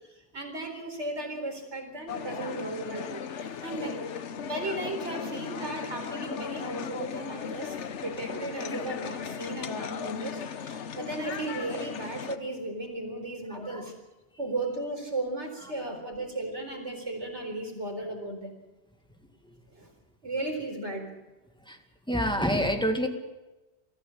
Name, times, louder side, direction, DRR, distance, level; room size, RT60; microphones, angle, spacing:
voice 1, 0.3-4.1 4.4-7.8 8.0-13.9 14.4-18.5 19.7-19.9 20.2-21.1, right 2 dB, 90° right, 3 dB, 4.5 m, -35 dB
sound 1, 2.1-12.4, left 7 dB, 85° left, 1.3 m, -37 dB
voice 2, 13.5-13.9 21.7-21.8 22.1-23.1, equal, 5° left, 5 dB, 2.0 m, -27 dB
23.0 x 14.5 x 8.7 m, 1.1 s
omnidirectional pair, 1.1 m